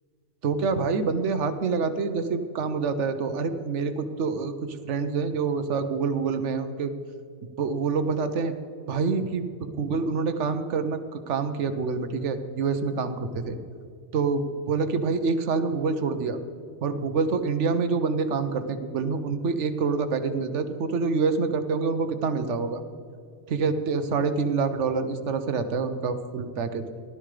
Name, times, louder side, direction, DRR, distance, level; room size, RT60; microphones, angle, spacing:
voice 1, 0.4-6.9 7.6-8.5 8.9-13.6 14.1-16.4 16.8-22.8 23.5-26.9, right 4 dB, 85° right, 9 dB, 1.2 m, -26 dB
16.5 x 12.5 x 3.3 m, 2.5 s
omnidirectional pair, 1.2 m